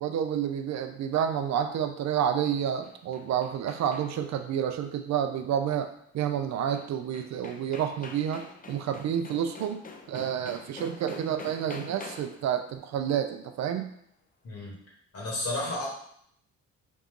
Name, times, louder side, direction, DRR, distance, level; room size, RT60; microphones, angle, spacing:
voice 1, 0.0-5.9 6.1-13.9, right 9 dB, 65° right, 7 dB, 0.5 m, -29 dB
sound 1, 2.6-4.4 6.7-6.8 7.1-12.5, left 4 dB, 30° left, 0.5 m, -46 dB
voice 2, 15.1-15.9, left 2 dB, 50° left, -3 dB, 1.6 m, -32 dB
4.1 x 2.4 x 3.6 m, 0.67 s
cardioid pair, 90°, 30 cm